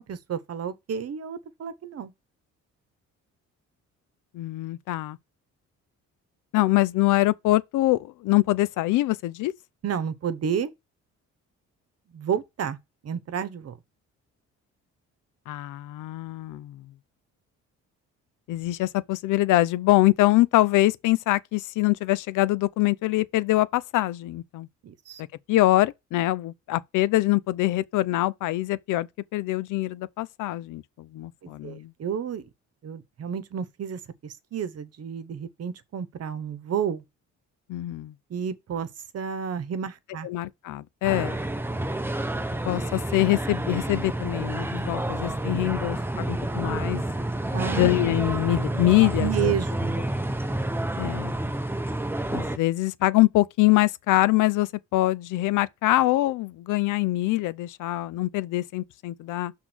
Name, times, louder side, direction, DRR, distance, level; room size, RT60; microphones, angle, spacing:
voice 1, 0.0-2.1 9.8-10.7 12.1-12.8 13.0-13.7 24.8-25.2 31.4-32.5 32.8-37.0 38.3-38.9 39.1-40.3 47.5-47.9 48.2-48.5 49.0-50.1, right 8 dB, 55° right, 1.1 m, -31 dB
voice 2, 4.3-5.2 6.5-9.5 15.5-16.8 18.5-24.7 25.2-31.9 37.7-38.1 40.2-41.3 42.7-47.0 47.8-49.5 50.9-51.3 52.3-59.5, left 17 dB, 90° left, 0.6 m, -24 dB
sound 1, 41.0-52.6, right 1 dB, 5° right, 0.8 m, -29 dB
6.1 x 3.8 x 6.1 m
cardioid pair, 90°, 30 cm